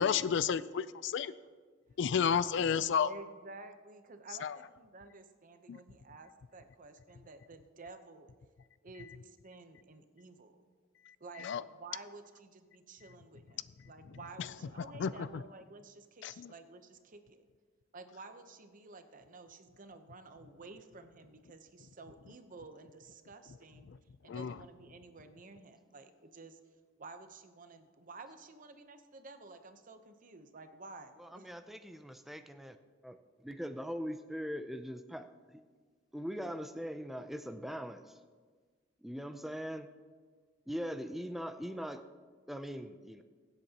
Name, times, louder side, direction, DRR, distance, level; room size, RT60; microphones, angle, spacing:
voice 1, 0.0-1.3 2.0-3.1 4.4-4.6 5.7-5.8 11.4-11.6 15.0-15.4 16.2-16.5 23.9-24.0 24.3-24.6, left 7 dB, 65° left, 16 dB, 0.4 m, -31 dB
voice 2, 3.0-8.3 8.8-10.6 11.2-17.4 17.9-23.9 24.2-26.6 27.0-31.5, right 3 dB, 45° right, 8 dB, 0.8 m, -52 dB
voice 3, 31.2-32.8 33.0-33.2 33.4-35.3 36.1-38.0 39.0-39.9 40.7-42.0 42.5-43.2, equal, ahead, 7 dB, 0.4 m, -41 dB
23.0 x 8.1 x 2.9 m, 1.5 s
head